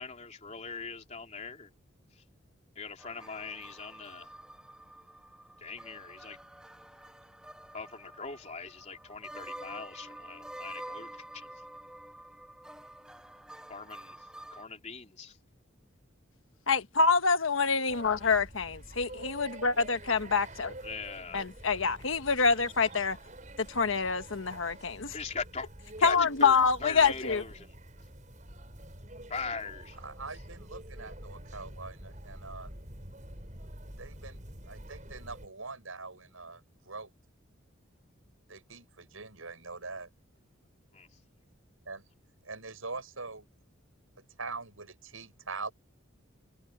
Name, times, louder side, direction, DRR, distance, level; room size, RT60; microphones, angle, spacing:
voice 1, 0.0-1.7 2.2-2.3 2.8-4.3 5.6-6.4 7.7-11.6 13.7-14.2 14.5-15.4 18.2-18.3 20.8-21.4 25.1-25.7 26.0-27.7 29.3-30.0 40.9-41.1, left 4 dB, 35° left, 3.5 m, -40 dB
sound 1, 3.0-14.6, right 1 dB, 5° right, 1.9 m, -48 dB
voice 2, 16.7-20.7 21.3-23.2 23.7-25.1 26.0-27.4, left 5 dB, 75° left, 1.3 m, -26 dB
sound 2, 17.9-35.5, right 1 dB, 35° right, 6.8 m, -47 dB
voice 3, 30.0-32.7 34.0-37.1 38.5-40.1 41.9-42.1 42.4-43.5 44.2-45.7, right 3 dB, 85° right, 7.3 m, -43 dB
head